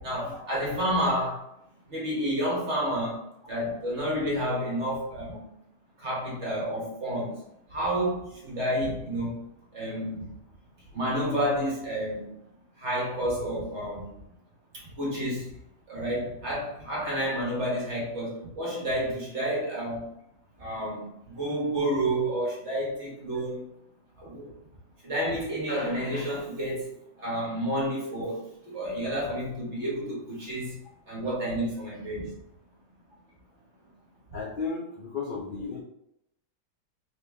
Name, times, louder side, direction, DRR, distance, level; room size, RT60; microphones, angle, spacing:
voice 1, 0.0-1.5 1.9-5.4 6.0-7.4 7.7-9.4 9.7-10.3 10.9-12.3 12.8-14.1 14.7-15.5 15.9-20.1 20.6-23.7 24.2-24.5 25.0-30.7 31.1-32.3, equal, 45° right, -5 dB, 1.7 m, -30 dB
voice 2, 34.3-35.8, left 4 dB, 75° left, -2 dB, 0.4 m, -34 dB
4.1 x 3.0 x 3.3 m, 0.80 s
omnidirectional pair, 1.7 m